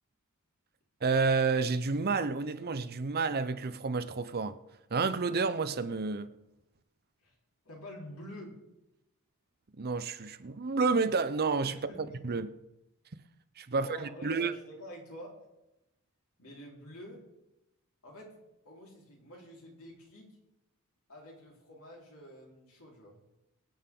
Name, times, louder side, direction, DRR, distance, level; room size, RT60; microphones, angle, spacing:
voice 1, 1.0-4.6 4.9-6.3 9.8-11.9 12.2-12.5 13.6-14.5, right 4 dB, 45° right, 0.7 m, -30 dB
voice 2, 7.6-8.6 11.7-12.2 13.7-15.4 16.4-17.2 18.0-18.3 18.6-20.4 21.1-23.2, equal, 70° left, 4.1 m, -48 dB
24.0 x 8.8 x 3.8 m
head